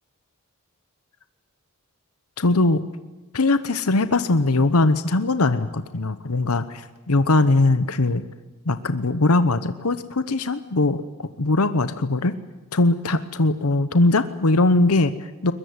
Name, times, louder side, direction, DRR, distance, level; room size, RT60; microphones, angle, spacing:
voice 1, 2.4-2.8 3.3-8.2 8.7-12.3 12.7-15.5, left 2 dB, 85° left, 12 dB, 1.0 m, -20 dB
22.0 x 22.0 x 9.6 m, 1.2 s
head